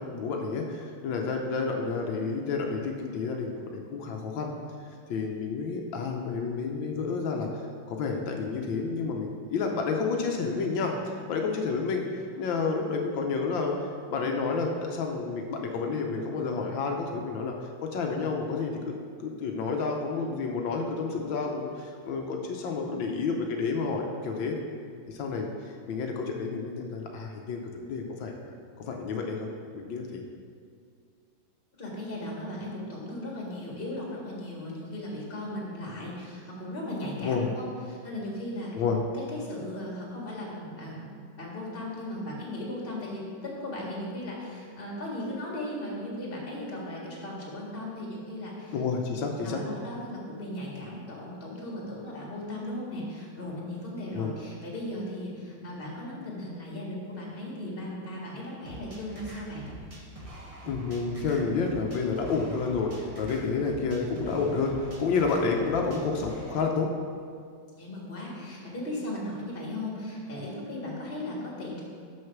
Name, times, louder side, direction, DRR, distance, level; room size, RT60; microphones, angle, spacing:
voice 1, 0.0-4.5 4.8-7.5 7.9-10.9 11.3-17.6 17.8-18.9 19.2-24.6 25.1-29.5 29.7-30.3 37.2-37.5 38.7-39.0 48.7-49.6 54.1-54.3 60.7-66.9, left 4 dB, 80° left, 1 dB, 1.5 m, -30 dB
voice 2, 31.8-38.7 39.1-41.1 41.4-48.7 49.1-59.7 67.8-71.8, left 1 dB, 30° left, -3 dB, 1.9 m, -37 dB
sound 1, 58.6-66.6, right 1 dB, 30° right, 0.7 m, -44 dB
6.5 x 6.3 x 5.9 m, 2.2 s
omnidirectional pair, 2.1 m